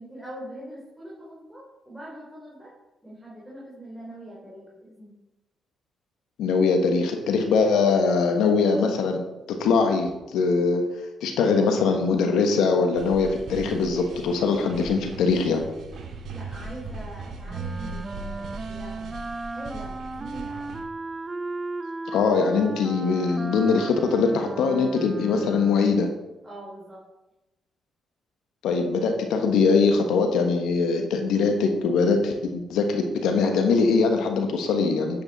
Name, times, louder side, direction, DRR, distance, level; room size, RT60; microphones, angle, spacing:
voice 1, 0.0-2.7 3.0-5.1 16.3-19.1 19.5-20.7 26.4-27.0, right 1 dB, 5° right, -6 dB, 3.2 m, -42 dB
voice 2, 6.4-9.2 9.5-10.8 11.2-15.6 22.1-26.1 28.6-35.2, left 4 dB, 85° left, 5 dB, 1.3 m, -22 dB
sound 1, 13.0-20.8, right 3 dB, 65° right, 2.1 m, -38 dB
Wind instrument woodwind instrument, 17.5-26.0, right 2 dB, 25° right, 0.6 m, -35 dB
9.9 x 8.0 x 4.1 m, 1.0 s
cardioid pair, 90°, 0 cm